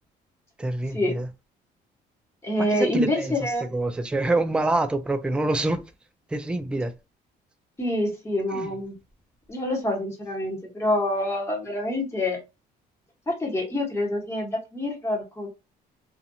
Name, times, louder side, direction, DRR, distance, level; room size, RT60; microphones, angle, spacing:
voice 1, 0.6-1.3 2.7-5.8 6.3-6.9 8.5-8.7, right 2 dB, 5° right, 0.3 m, -26 dB
voice 2, 2.4-3.7 7.8-8.9 9.5-12.4 13.3-15.5, left 1 dB, 15° left, 1.2 m, -26 dB
2.5 x 2.5 x 2.7 m
cardioid pair, 110°, 17 cm